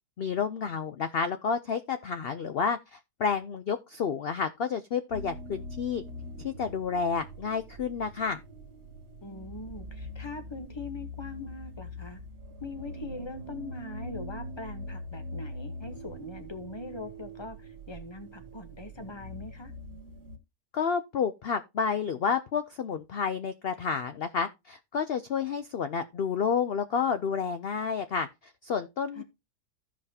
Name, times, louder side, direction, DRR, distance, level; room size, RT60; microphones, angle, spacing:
voice 1, 0.2-6.0 6.4-8.4 20.7-28.3 28.6-29.2, left 6 dB, 85° left, 0.5 m, -30 dB
sound 1, 5.1-20.4, equal, 85° right, 2.1 m, -43 dB
voice 2, 9.2-12.2 12.6-19.7 29.1-29.2, left 3 dB, 20° left, 0.8 m, -42 dB
15.0 x 5.2 x 2.7 m
omnidirectional pair, 1.7 m